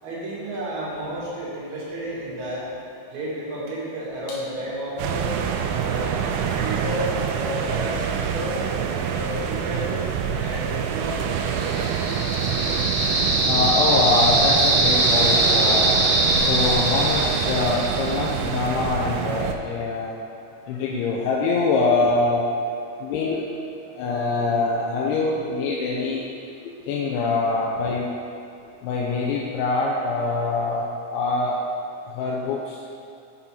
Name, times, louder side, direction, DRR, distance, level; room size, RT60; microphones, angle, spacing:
voice 1, 0.0-2.7 3.1-5.3 5.8-6.2 6.6-7.1 7.4-8.6 9.0-12.2, right 1 dB, 50° right, -7 dB, 2.4 m, -32 dB
sound 1, 5.0-19.6, right 7 dB, 85° right, 2.9 m, -26 dB
sound 2, 11.5-18.4, right 1 dB, 70° right, 2.6 m, -22 dB
voice 2, 13.5-15.9 16.4-20.1 20.7-22.5 23.0-23.4 24.0-26.3 26.9-28.1 28.8-31.6 32.1-32.7, left 3 dB, 80° left, -4 dB, 3.0 m, -24 dB
7.0 x 7.0 x 4.3 m, 2.6 s
omnidirectional pair, 5.5 m